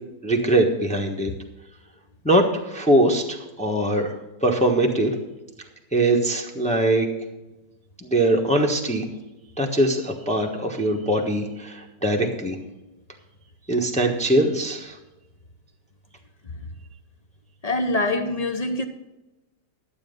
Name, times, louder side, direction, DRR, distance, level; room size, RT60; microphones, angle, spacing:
voice 1, 0.2-1.3 2.2-5.1 5.9-7.1 8.0-9.0 9.6-12.6 13.7-15.0, right 1 dB, 5° left, 1.1 m, -22 dB
voice 2, 17.6-18.8, left 2 dB, 45° left, 0.5 m, -24 dB
12.0 x 8.4 x 5.3 m
omnidirectional pair, 1.9 m